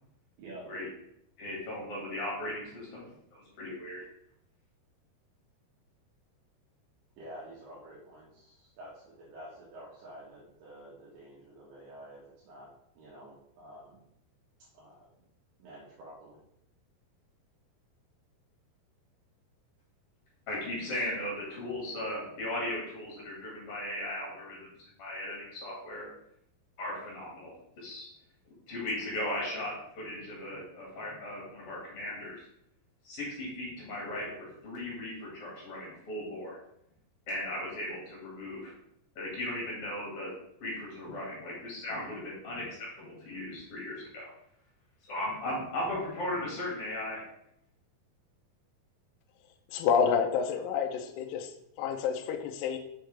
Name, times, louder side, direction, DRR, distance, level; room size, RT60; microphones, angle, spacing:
voice 1, 0.4-0.7 7.2-12.7 13.0-14.0 14.6-15.1 15.6-16.4, right 1 dB, 80° right, -7 dB, 3.8 m, -49 dB
voice 2, 1.4-4.0 20.5-24.7 25.0-26.1 26.8-28.1 28.7-32.4 33.0-36.6 37.3-38.7 39.2-40.3 40.6-44.3 45.1-47.2, left 1 dB, 45° left, -4 dB, 2.3 m, -37 dB
voice 3, 49.7-51.5 51.8-52.8, left 7 dB, 90° left, 4 dB, 1.9 m, -28 dB
6.7 x 6.5 x 3.3 m, 0.75 s
omnidirectional pair, 5.0 m